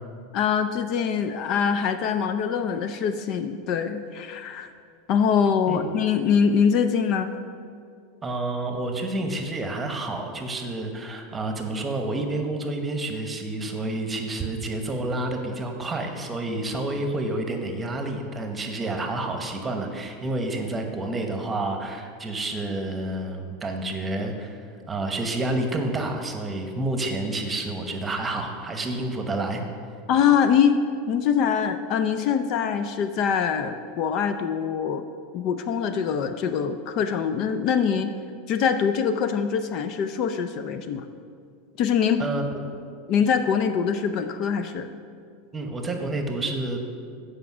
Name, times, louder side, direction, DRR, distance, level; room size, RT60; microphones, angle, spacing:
voice 1, 0.3-4.7 5.1-7.3 30.1-30.8 31.1-35.0 35.3-38.1 38.5-41.1 41.8-42.2 43.1-44.9, left 7 dB, 50° left, 9 dB, 0.4 m, -23 dB
voice 2, 8.2-24.6 24.9-29.6 42.2-42.6 45.5-46.8, right 2 dB, 15° right, 4 dB, 1.0 m, -29 dB
8.1 x 5.1 x 6.1 m, 2.3 s
supercardioid pair, 120°, 0 cm